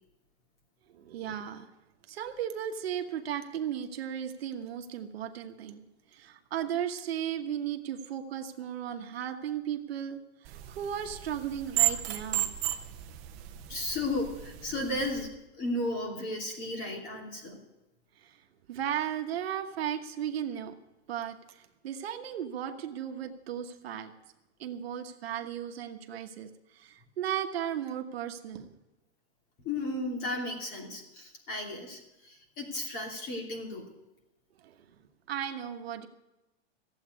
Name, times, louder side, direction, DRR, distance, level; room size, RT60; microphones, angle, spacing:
voice 1, 0.9-1.7 2.1-5.8 6.1-12.6 18.2-18.4 18.7-20.7 21.1-24.1 24.6-28.7 34.6-35.0 35.3-36.1, right 9 dB, 60° right, 6 dB, 1.3 m, -36 dB
sound 1, 10.4-15.3, right 13 dB, 20° right, 0.6 m, -34 dB
voice 2, 13.7-15.3 15.5-17.6 29.6-33.9, left 2 dB, 30° left, 1 dB, 2.9 m, -34 dB
15.0 x 8.1 x 9.5 m, 1.0 s
supercardioid pair, 175°, 35 cm